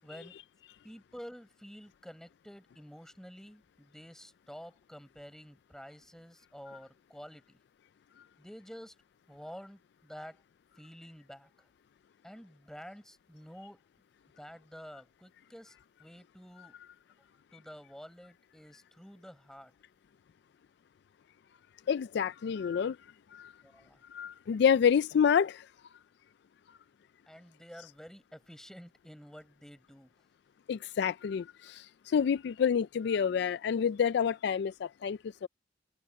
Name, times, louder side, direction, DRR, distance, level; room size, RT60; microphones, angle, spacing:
voice 1, 0.0-0.4 0.8-7.6 8.4-8.9 9.3-10.4 10.8-11.7 12.2-13.8 14.4-16.8 17.5-19.7 23.6-24.0 27.3-30.1, equal, 5° left, 6.3 m, -50 dB
voice 2, 21.9-23.0 23.3-23.5 24.1-25.6 30.7-35.5, left 7 dB, 65° left, 0.3 m, -28 dB
open air
head